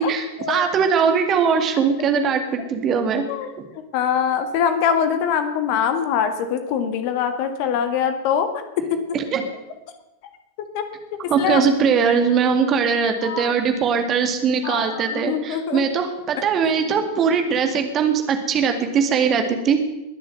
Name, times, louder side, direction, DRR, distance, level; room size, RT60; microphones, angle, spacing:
voice 1, 0.0-3.2 9.1-9.4 11.3-19.8, right 6 dB, 30° right, 6 dB, 2.2 m, -20 dB
voice 2, 3.3-9.0 10.7-10.8 11.4-11.6 13.2-13.6 14.6-15.8 16.6-16.7, left 7 dB, 45° left, 8 dB, 1.9 m, -23 dB
21.5 x 7.4 x 7.9 m, 0.99 s
figure-of-eight pair, 90°, 0 cm